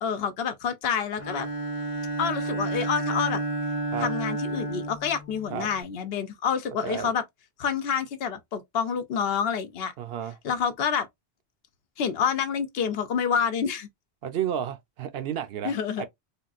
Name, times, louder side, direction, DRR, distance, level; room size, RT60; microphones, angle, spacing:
voice 1, 0.0-1.5 2.2-3.4 4.0-7.2 7.6-9.9 10.4-11.1 12.0-13.9 15.6-16.0, left 7 dB, 70° left, 0.7 m, -28 dB
Bowed string instrument, 1.2-5.8, right 2 dB, 35° left, 0.8 m, -31 dB
voice 2, 10.0-10.4 14.2-16.1, right 9 dB, 70° right, 0.8 m, -32 dB
3.6 x 2.3 x 2.4 m
omnidirectional pair, 1.1 m